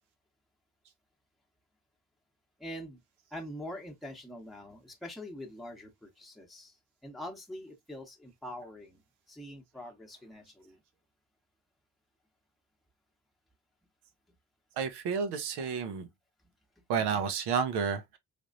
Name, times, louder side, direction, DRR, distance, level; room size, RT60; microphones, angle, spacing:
voice 1, 2.6-3.0 3.3-6.8 7.0-9.0 9.3-10.8, left 1 dB, ahead, 0.9 m, -44 dB
voice 2, 14.8-16.1 16.9-18.2, right 6 dB, 85° right, 0.8 m, -31 dB
3.4 x 3.0 x 2.5 m
cardioid pair, 90°, 39 cm